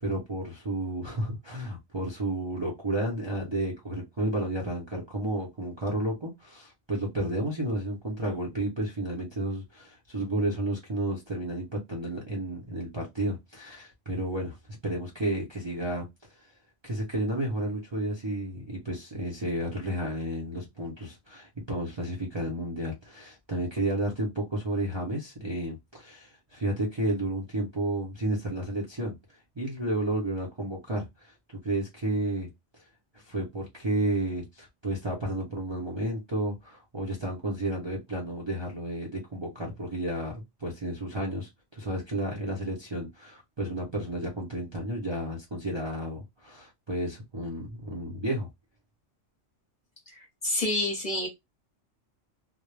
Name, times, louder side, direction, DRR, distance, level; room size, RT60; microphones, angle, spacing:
voice 1, 0.0-14.6 14.8-16.1 16.8-29.1 29.6-31.3 31.6-32.5 33.3-48.5, right 1 dB, 30° right, 0.6 m, -32 dB
voice 2, 50.1-51.3, left 1 dB, 40° left, 0.8 m, -29 dB
2.2 x 2.0 x 3.1 m
omnidirectional pair, 1.2 m